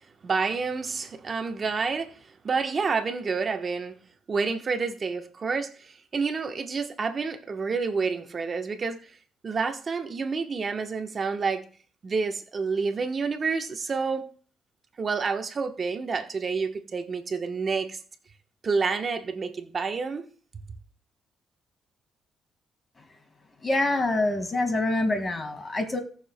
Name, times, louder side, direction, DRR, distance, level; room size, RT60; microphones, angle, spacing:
voice 1, 0.2-2.2 2.4-4.0 4.3-9.1 9.4-11.6 12.0-14.2 15.0-18.0 18.6-20.3, right 4 dB, 40° right, 1.1 m, -29 dB
voice 2, 23.6-26.0, left 2 dB, 30° left, 1.9 m, -26 dB
18.0 x 6.7 x 2.2 m
cardioid pair, 90°, 0 cm